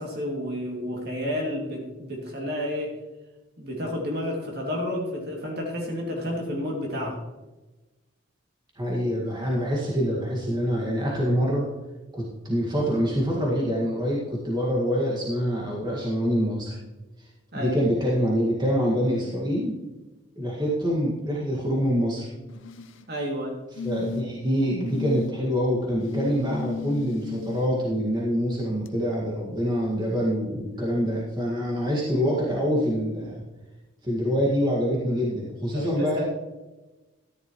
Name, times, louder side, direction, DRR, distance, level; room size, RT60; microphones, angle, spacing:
voice 1, 0.0-2.9 3.6-7.2 17.5-17.8 23.1-23.6 35.7-36.2, left 1 dB, 50° right, -1 dB, 2.6 m, -30 dB
voice 2, 8.8-11.7 12.1-16.8 17.5-19.8 20.4-22.3 23.8-33.4 34.0-36.2, equal, 20° right, -4 dB, 1.9 m, -25 dB
sound 1, 22.5-23.1 23.8-24.4 24.9-25.3 26.0-27.6 28.9-29.0, left 5 dB, 70° left, 0.8 m, -34 dB
13.5 x 10.5 x 3.1 m, 1.1 s
head